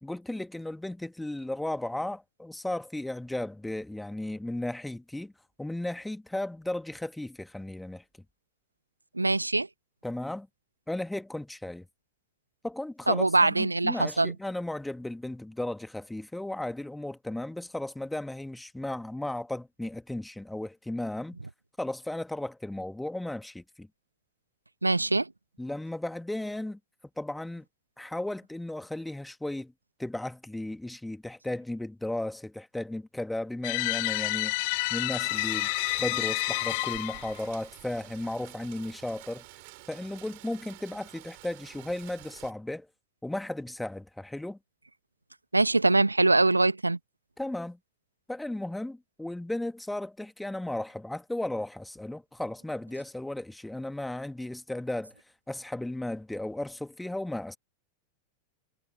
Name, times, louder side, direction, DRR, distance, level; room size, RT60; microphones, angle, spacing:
voice 1, 0.0-5.3 5.6-8.0 10.0-10.5 10.9-11.9 12.6-21.4 21.8-23.9 25.6-26.8 27.2-27.6 28.0-29.7 30.0-34.5 34.9-35.7 36.0-39.4 39.9-42.9 43.2-44.6 47.4-47.8 48.3-55.1 55.5-57.6, left 1 dB, 5° left, 1.9 m, -35 dB
voice 2, 9.1-9.7 13.1-14.3 24.8-25.3 45.5-47.0, right 2 dB, 80° right, 1.2 m, -23 dB
sound 1, 33.6-37.4, left 28 dB, 45° left, 0.6 m, -29 dB
Rain, 35.2-42.5, right 26 dB, 50° right, 6.7 m, -48 dB
figure-of-eight pair, 90°, 0 cm